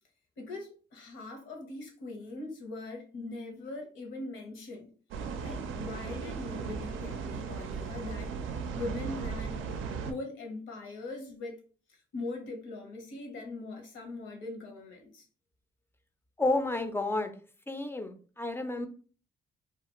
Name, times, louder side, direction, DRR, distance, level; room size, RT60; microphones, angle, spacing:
voice 1, 0.4-4.9 5.4-8.3 8.6-9.6 10.0-11.6 11.9-15.3, left 2 dB, 80° left, 0.9 m, -41 dB
sound 1, 5.1-10.1, right 5 dB, 80° right, 0.4 m, -37 dB
voice 2, 16.4-17.3 17.7-18.9, left 2 dB, 10° left, 0.4 m, -31 dB
2.4 x 2.4 x 2.9 m
cardioid pair, 90°, 20 cm